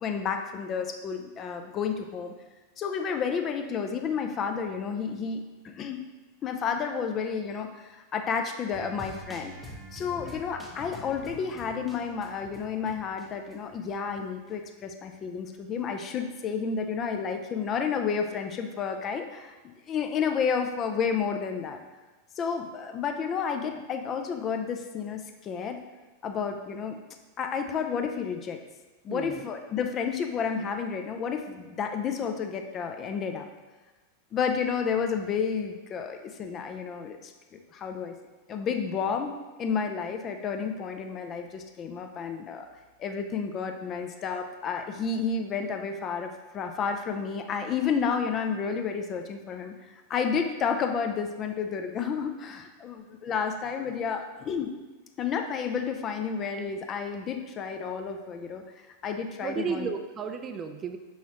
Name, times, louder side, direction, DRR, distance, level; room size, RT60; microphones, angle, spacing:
voice 1, 0.0-2.3 2.8-6.0 6.4-9.5 9.9-19.6 19.9-21.8 22.4-25.8 26.2-27.0 27.4-28.6 29.0-33.5 34.3-37.3 37.7-38.1 38.5-42.7 43.0-49.7 50.1-54.7 55.2-58.6 59.0-59.9, left 6 dB, 30° left, 5 dB, 0.5 m, -31 dB
sound 1, 8.7-14.5 14.8-14.9, equal, 5° right, 0.9 m, -46 dB
voice 2, 29.1-29.4 59.4-61.0, right 6 dB, 25° right, 7 dB, 0.4 m, -33 dB
6.0 x 5.5 x 2.9 m, 1.2 s
figure-of-eight pair, 90°, 0 cm